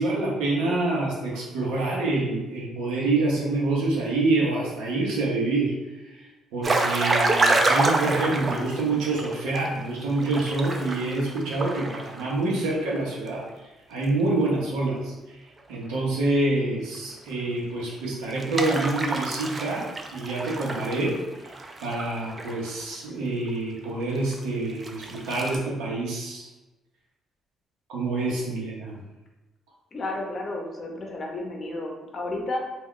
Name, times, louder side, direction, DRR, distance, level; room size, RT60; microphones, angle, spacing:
voice 1, 0.0-5.7 6.0-6.3 6.5-13.4 13.9-15.4 15.7-21.2 21.8-26.5 27.9-28.9, right 2 dB, 85° right, -4 dB, 0.8 m, -26 dB
sound 1, 6.6-9.7 10.1-13.0 13.3-13.4 16.9-17.0 18.3-22.8 23.5-23.6 24.3-24.4 24.8-25.6, right 2 dB, 35° right, 0.4 m, -27 dB
voice 2, 29.9-32.6, left 2 dB, 45° left, 0 dB, 0.6 m, -32 dB
2.3 x 2.3 x 3.6 m, 1.1 s
supercardioid pair, 60°, 0 cm